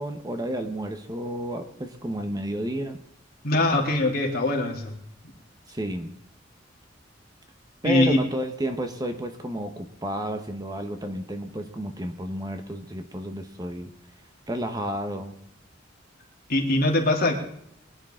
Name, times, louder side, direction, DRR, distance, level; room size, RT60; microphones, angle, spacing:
voice 1, 0.0-3.0 5.7-6.1 7.8-13.9 14.5-15.4, equal, 20° right, 6 dB, 1.1 m, -31 dB
voice 2, 3.4-4.9 7.8-8.2 16.5-17.3, left 2 dB, 55° left, 0 dB, 3.1 m, -22 dB
23.5 x 10.5 x 3.8 m, 0.73 s
head